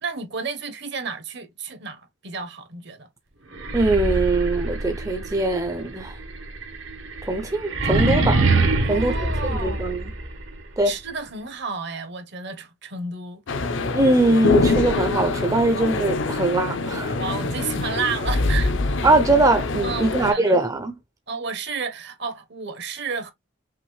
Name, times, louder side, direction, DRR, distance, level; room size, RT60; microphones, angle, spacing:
voice 1, 0.0-3.1 8.9-10.0 10.8-13.4 17.1-18.7 19.8-20.6 21.3-23.3, right 4 dB, 60° right, 1.0 m, -31 dB
sound 1, 3.5-10.4, right 2 dB, 75° right, 1.3 m, -24 dB
voice 2, 3.7-6.1 7.3-8.4 8.8-9.1 9.5-10.0 10.8-10.9 13.9-17.1 19.0-21.0, right 2 dB, 15° right, 0.5 m, -21 dB
sound 2, 13.5-20.3, left 3 dB, 70° left, 0.7 m, -24 dB
5.8 x 2.5 x 3.1 m
head